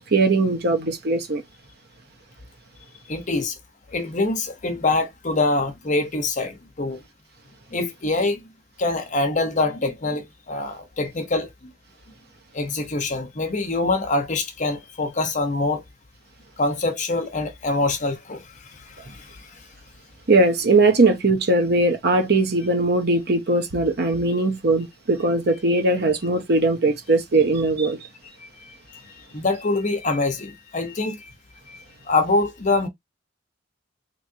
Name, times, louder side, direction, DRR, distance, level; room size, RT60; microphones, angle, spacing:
voice 1, 0.0-1.4 20.3-28.0, right 2 dB, 55° right, 0.9 m, -20 dB
voice 2, 3.1-3.6 3.9-7.0 7.7-8.4 8.8-11.7 12.5-15.8 16.6-19.5 28.4-29.0 29.3-31.3 31.7-31.8 32.0-32.9, left 2 dB, 40° left, 0.9 m, -25 dB
3.6 x 3.0 x 2.7 m
head